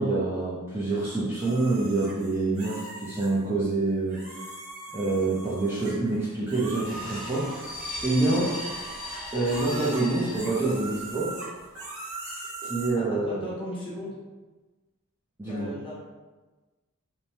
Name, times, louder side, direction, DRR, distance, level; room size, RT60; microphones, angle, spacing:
voice 1, 0.0-4.2 4.9-7.7 8.0-8.5 9.3-11.3 12.6-13.4 15.4-15.7, right 2 dB, 10° right, -9 dB, 0.5 m, -26 dB
sound 1, 1.4-3.3 4.1-6.1 6.5-12.9, right 3 dB, 75° right, 0.9 m, -41 dB
sound 2, 6.8-11.2 11.5-11.6, left 1 dB, 90° left, 1.0 m, -37 dB
voice 2, 12.9-14.2 15.5-15.9, equal, 25° left, -6 dB, 0.8 m, -37 dB
3.0 x 2.1 x 2.7 m, 1.2 s
head